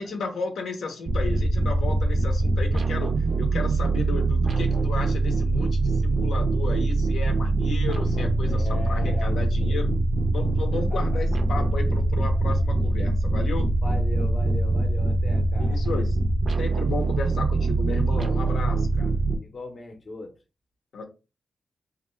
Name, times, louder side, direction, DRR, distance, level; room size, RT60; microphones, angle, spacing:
voice 1, 0.0-10.0 10.3-13.7 15.6-16.2 16.6-19.1 20.9-21.0, left 4 dB, 90° left, 0.6 m, -33 dB
sound 1, 1.1-19.4, right 2 dB, 50° right, 0.4 m, -23 dB
voice 2, 8.4-9.8 10.9-11.2 13.8-15.9 19.4-20.3, left 2 dB, 45° left, 0.6 m, -39 dB
2.4 x 2.2 x 3.0 m
wide cardioid pair, 105°, 0 cm